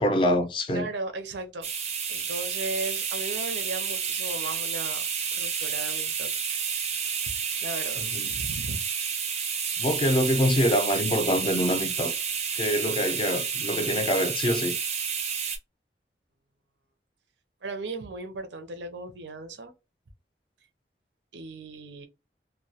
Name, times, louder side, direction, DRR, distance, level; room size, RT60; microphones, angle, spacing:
voice 1, 0.0-0.9 8.0-8.3 9.8-12.1 12.5-14.8, equal, 30° left, 0.4 m, -25 dB
voice 2, 0.7-1.7 2.1-5.0 5.3-6.3 7.0-7.1 7.6-8.0 8.3-8.8 17.6-19.7 21.3-22.1, right 2 dB, 85° right, 0.6 m, -36 dB
sound 1, 1.6-15.6, right 6 dB, 35° right, 0.4 m, -30 dB
2.1 x 2.1 x 2.8 m
head